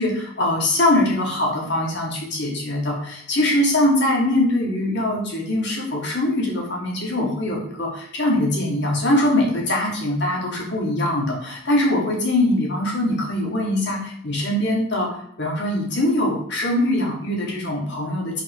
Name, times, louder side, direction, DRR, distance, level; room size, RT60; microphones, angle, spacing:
voice 1, 0.0-18.4, left 1 dB, 55° left, -2 dB, 1.9 m, -22 dB
4.9 x 3.8 x 5.4 m, 0.67 s
head